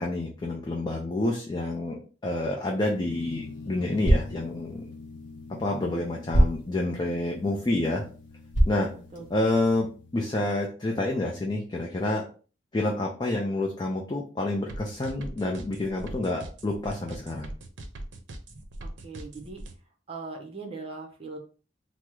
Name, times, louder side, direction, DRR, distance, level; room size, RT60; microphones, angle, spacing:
voice 1, 0.0-2.0 2.2-4.8 5.5-8.0 8.7-8.9 9.3-9.9 10.1-12.2 12.7-17.5, left 2 dB, 25° left, -1 dB, 0.4 m, -28 dB
sound 1, 2.8-9.7, equal, 45° left, 0.7 m, -29 dB
sound 2, 3.0-10.2, left 3 dB, 80° left, 0.5 m, -45 dB
voice 2, 8.9-9.3 18.8-19.6 20.1-21.4, right 3 dB, 30° right, 3 dB, 0.7 m, -40 dB
sound 3, 14.7-19.7, right 1 dB, 75° right, 0.6 m, -40 dB
3.4 x 2.0 x 3.0 m, 0.38 s
head